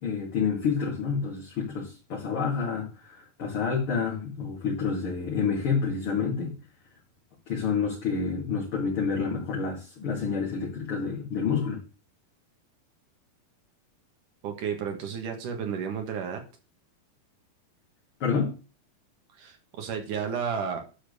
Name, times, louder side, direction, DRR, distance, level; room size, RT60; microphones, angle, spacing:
voice 1, 0.0-6.6 7.5-11.8 18.2-18.5, left 5 dB, 40° left, -4 dB, 2.8 m, -28 dB
voice 2, 14.4-16.4 19.4-20.8, right 7 dB, 65° right, 4 dB, 3.0 m, -32 dB
12.0 x 4.4 x 6.7 m, 0.35 s
omnidirectional pair, 4.2 m